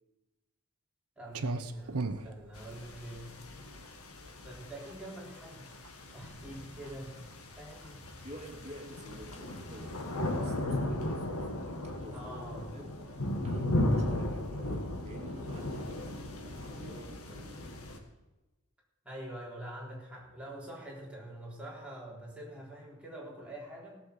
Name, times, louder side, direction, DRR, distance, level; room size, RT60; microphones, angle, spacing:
voice 1, 1.2-3.3 4.4-5.7 6.1-7.2 7.6-8.0 12.1-12.8 19.0-24.0, right 1 dB, 5° right, -4 dB, 3.6 m, -45 dB
Clock, 1.3-8.7, right 3 dB, 80° right, 0.8 m, -41 dB
sound 1, 2.6-18.0, left 1 dB, 70° left, 1.7 m, -36 dB
voice 2, 8.2-12.3 12.7-12.9 13.4-17.7, equal, 30° right, -1 dB, 2.6 m, -49 dB
16.5 x 7.1 x 6.5 m, 1.1 s
head